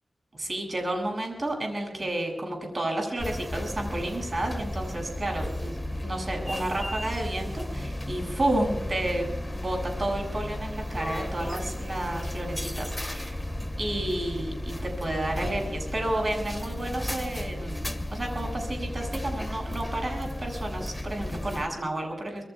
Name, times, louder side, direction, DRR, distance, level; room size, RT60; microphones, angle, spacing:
voice 1, 0.3-13.4 13.8-17.8 18.1-22.4, right 1 dB, 45° right, 2 dB, 7.4 m, -31 dB
sound 1, 3.2-21.7, left 1 dB, 15° left, 1.6 m, -34 dB
26.5 x 21.5 x 2.4 m, 0.92 s
wide cardioid pair, 65°, 0 cm